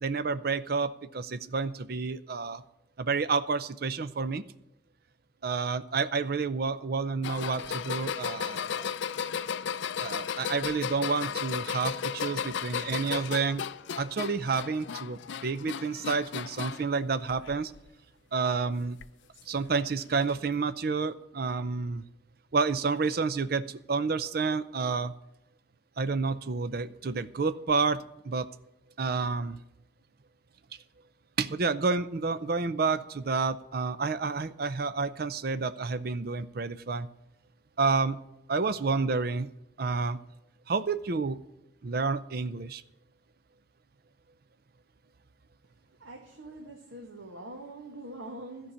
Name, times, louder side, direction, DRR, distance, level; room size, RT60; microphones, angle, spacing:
voice 1, 0.0-2.6 3.0-4.4 5.4-8.9 10.0-13.6 14.0-17.7 18.3-19.0 19.5-22.0 22.5-25.1 26.0-28.5 29.0-29.6 31.4-37.1 37.8-38.2 38.5-39.5 39.8-40.2 40.7-41.4 41.8-42.8, right 4 dB, 50° right, 13 dB, 0.5 m, -29 dB
sound 1, 7.2-16.9 17.3-17.9 19.0-19.1 20.2-20.3, left 7 dB, 65° left, 0.4 m, -35 dB
voice 2, 46.0-48.7, right 1 dB, 75° right, 1 dB, 1.6 m, -43 dB
13.0 x 5.4 x 8.5 m, 0.86 s
head